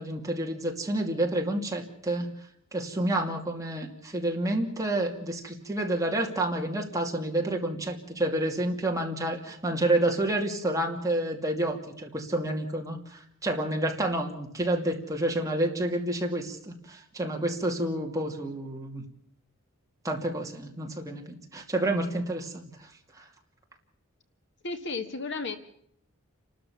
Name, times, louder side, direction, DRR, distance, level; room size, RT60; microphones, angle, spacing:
voice 1, 0.0-2.3 2.7-19.0 20.0-22.9 23.1-23.3, right 1 dB, 15° right, 1 dB, 2.6 m, -29 dB
voice 2, 24.6-25.6, left 3 dB, 55° left, 8 dB, 1.7 m, -33 dB
30.0 x 13.0 x 7.1 m, 0.68 s
head